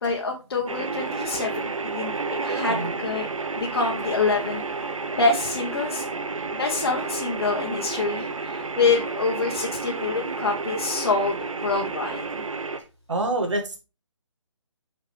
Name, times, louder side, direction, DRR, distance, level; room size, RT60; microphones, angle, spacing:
voice 1, 0.0-1.6 1.9-3.3 3.5-6.0 6.6-12.4, left 4 dB, 50° left, 0 dB, 1.2 m, -26 dB
sound 1, 0.7-12.8, right 4 dB, 85° right, 0.8 m, -31 dB
voice 2, 13.1-13.8, right 2 dB, 65° right, 4 dB, 1.9 m, -26 dB
5.9 x 5.8 x 3.3 m, 0.30 s
figure-of-eight pair, 155°, 16 cm